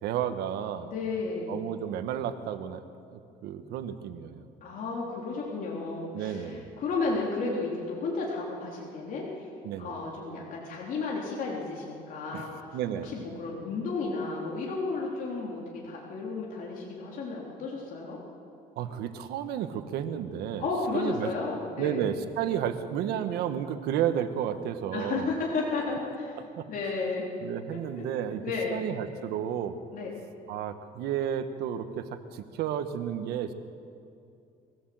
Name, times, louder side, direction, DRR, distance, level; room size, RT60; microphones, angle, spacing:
voice 1, 0.0-0.9 1.5-2.8 3.1-4.4 6.1-6.7 9.6-9.9 12.3-12.4 12.7-13.1 18.8-20.7 20.9-21.3 21.8-25.3 26.4-26.7 27.4-28.4 28.7-29.8 30.5-33.5, right 9 dB, 85° right, 9 dB, 1.4 m, -32 dB
voice 2, 0.8-1.6 4.6-9.5 9.8-12.7 13.0-18.2 20.6-22.0 24.9-27.3 28.0-28.1 28.4-28.8 29.9-30.2, left 3 dB, 55° left, -3 dB, 3.6 m, -33 dB
23.0 x 16.0 x 7.8 m, 2.5 s
cardioid pair, 125°, 16 cm